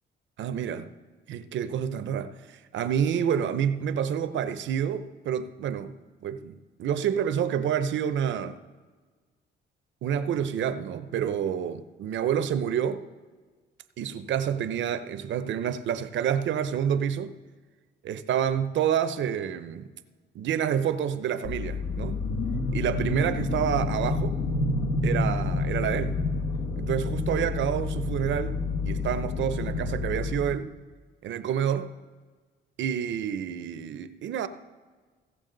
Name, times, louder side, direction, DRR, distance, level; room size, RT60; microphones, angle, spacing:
voice 1, 0.4-0.9 1.3-5.9 6.2-8.6 10.0-13.0 14.0-17.3 18.0-19.9 20.3-22.2 22.7-24.4 25.0-26.2 26.8-28.6 28.8-30.7 31.2-31.9 32.8-34.5, right 8 dB, 70° right, 0.7 m, -28 dB
sound 1, 21.4-30.6, left 3 dB, 85° left, 1.4 m, -29 dB
16.0 x 7.1 x 3.9 m
cardioid pair, 90°, 20 cm